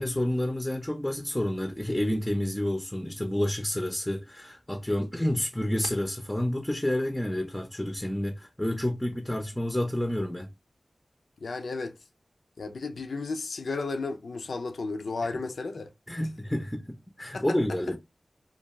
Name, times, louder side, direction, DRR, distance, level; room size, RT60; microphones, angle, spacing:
voice 1, 0.0-10.5 15.2-15.3 16.1-18.0, left 1 dB, 10° left, 0.5 m, -29 dB
voice 2, 11.4-11.9 12.6-15.9 16.2-16.3 17.3-17.4, left 3 dB, 85° left, 0.4 m, -33 dB
2.3 x 2.2 x 3.0 m
cardioid pair, 45°, 0 cm